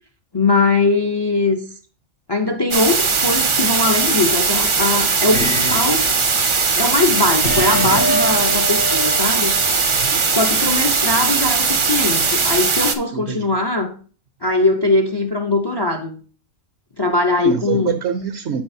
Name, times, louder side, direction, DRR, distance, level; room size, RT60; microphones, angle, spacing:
voice 1, 0.3-1.6 2.3-6.1 6.8-9.5 10.3-13.9 14.4-16.2 17.0-17.9, left 2 dB, 35° left, 0.4 m, -20 dB
sound 1, 2.7-13.0, right 4 dB, 40° right, 0.4 m, -19 dB
sound 2, 5.3-6.2 7.4-10.2, right 1 dB, 85° left, 2.4 m, -25 dB
voice 2, 9.9-10.2 13.1-13.5 17.4-18.6, right 7 dB, 65° right, 0.8 m, -25 dB
11.5 x 4.8 x 2.7 m
omnidirectional pair, 1.3 m